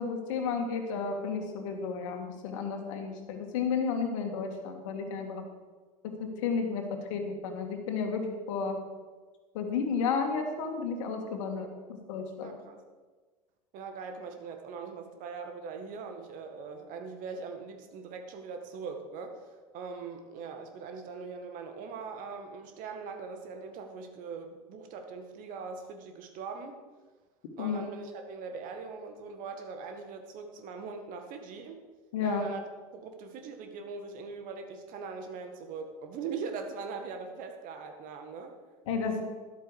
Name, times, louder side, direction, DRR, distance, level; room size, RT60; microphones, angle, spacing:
voice 1, 0.0-5.4 6.0-6.8 7.1-8.8 9.5-12.5 27.6-27.8 32.1-32.4 38.9-39.2, left 5 dB, 60° left, 4 dB, 2.1 m, -32 dB
voice 2, 12.4-12.8 13.7-19.5 19.7-26.7 27.6-31.8 32.2-32.6 32.9-38.5, right 5 dB, 50° right, 5 dB, 1.8 m, -41 dB
13.0 x 11.0 x 4.9 m, 1.4 s
figure-of-eight pair, 75°, 18 cm